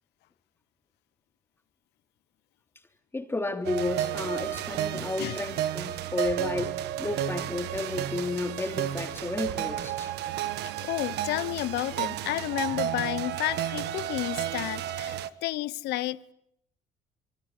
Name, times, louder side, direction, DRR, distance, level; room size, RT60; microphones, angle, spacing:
voice 1, 3.1-10.1, left 2 dB, 15° left, 3.3 m, -32 dB
sound 1, 3.6-15.3, right 12 dB, 80° right, 1.5 m, -32 dB
voice 2, 4.9-5.4 10.8-16.2, left 16 dB, 85° left, 1.0 m, -31 dB
26.5 x 24.0 x 8.4 m
cardioid pair, 110°, 17 cm